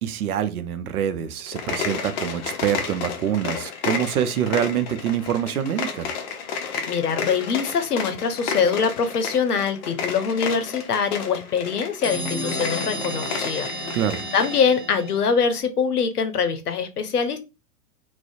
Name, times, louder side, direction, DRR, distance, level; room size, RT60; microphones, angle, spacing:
voice 1, 0.0-6.1 13.9-14.2, right 9 dB, 75° right, 0.5 m, -25 dB
sound 1, 1.4-14.7, left 6 dB, 45° left, 0.5 m, -32 dB
voice 2, 6.9-14.0 14.3-17.4, left 6 dB, 85° left, 0.6 m, -23 dB
sound 2, 12.0-15.6, equal, 10° left, 0.9 m, -32 dB
2.4 x 2.1 x 2.4 m
hypercardioid pair, 105°, 44 cm